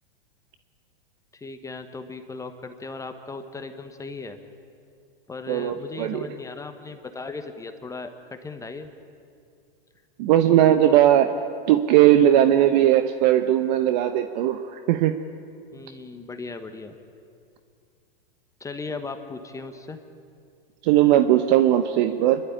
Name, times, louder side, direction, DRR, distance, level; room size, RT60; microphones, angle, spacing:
voice 1, 1.3-4.4 5.3-8.9 15.7-17.0 18.6-20.0, left 3 dB, 10° left, 7 dB, 1.2 m, -37 dB
voice 2, 5.5-6.2 10.2-11.3 11.7-15.1 20.8-22.4, right 12 dB, 50° right, 9 dB, 1.0 m, -18 dB
26.5 x 12.0 x 10.0 m, 2.4 s
hypercardioid pair, 125°, 29 cm